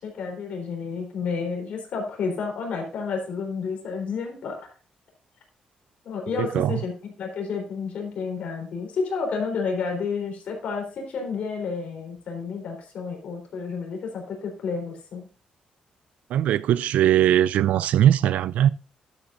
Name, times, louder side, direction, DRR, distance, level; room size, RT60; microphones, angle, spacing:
voice 1, 0.0-4.6 6.0-15.3, left 5 dB, 70° left, 3.9 m, -30 dB
voice 2, 6.4-6.8 16.3-18.7, right 11 dB, 85° right, 0.3 m, -20 dB
12.0 x 8.1 x 2.6 m
cardioid pair, 115°, 2 cm